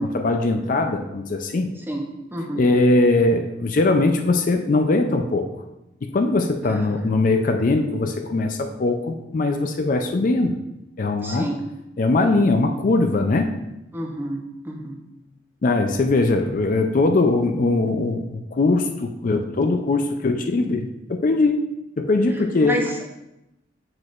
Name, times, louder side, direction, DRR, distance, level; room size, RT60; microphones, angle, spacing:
voice 1, 0.0-1.7 2.6-5.5 6.0-10.6 11.0-11.5 12.0-13.6 15.6-21.6 22.0-22.8, left 2 dB, 45° left, 5 dB, 0.4 m, -21 dB
voice 2, 2.3-2.6 6.6-7.0 11.2-11.6 13.9-15.0 22.6-23.0, right 1 dB, 10° right, 2 dB, 0.7 m, -29 dB
6.6 x 6.2 x 2.4 m, 0.90 s
head